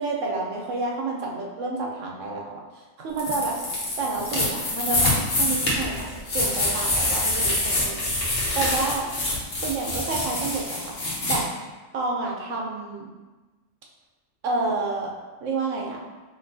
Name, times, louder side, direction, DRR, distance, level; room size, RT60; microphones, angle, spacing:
voice 1, 0.0-2.6 3.0-3.6 4.0-8.1 8.5-9.1 9.6-10.9 11.2-11.4 11.9-13.1 14.4-15.1 15.4-16.0, right 3 dB, 80° right, -1 dB, 1.1 m, -29 dB
sound 1, 3.2-11.4, left 1 dB, 70° left, 1.3 m, -26 dB
4.3 x 3.5 x 2.7 m, 1.2 s
omnidirectional pair, 1.3 m